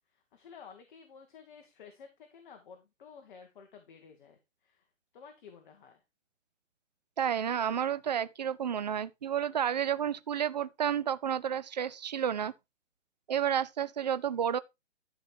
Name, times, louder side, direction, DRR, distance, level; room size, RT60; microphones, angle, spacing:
voice 1, 0.1-4.9 5.1-6.0, left 6 dB, 40° left, 1.8 m, -53 dB
voice 2, 7.2-12.5 13.3-14.6, right 9 dB, 35° right, 0.5 m, -31 dB
12.5 x 5.0 x 4.5 m
hypercardioid pair, 155°, 38 cm